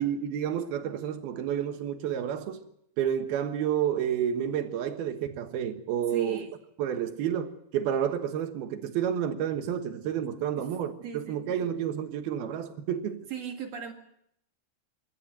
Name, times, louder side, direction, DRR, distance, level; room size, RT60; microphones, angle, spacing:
voice 1, 0.0-2.7 3.0-6.4 6.8-13.3, right 9 dB, 65° right, 3.0 m, -30 dB
voice 2, 6.1-6.6 10.6-10.7 11.0-11.4 13.3-13.9, right 6 dB, 45° right, 2.4 m, -38 dB
25.5 x 12.5 x 9.2 m
omnidirectional pair, 5.2 m